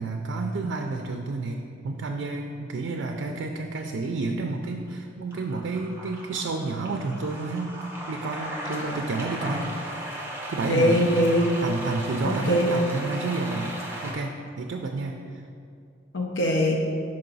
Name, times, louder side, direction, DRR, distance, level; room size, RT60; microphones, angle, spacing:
voice 1, 0.0-1.6 1.8-7.7 8.1-9.7 10.5-11.0 11.6-13.7 14.0-15.4, right 3 dB, 85° right, 3 dB, 0.4 m, -30 dB
sound 1, 4.6-4.9 5.3-14.1, right 1 dB, 10° right, 0.8 m, -37 dB
voice 2, 8.7-9.0 10.7-11.5 12.5-12.7 16.1-16.9, equal, 75° left, -1 dB, 0.6 m, -22 dB
5.6 x 5.3 x 4.0 m, 2.4 s
head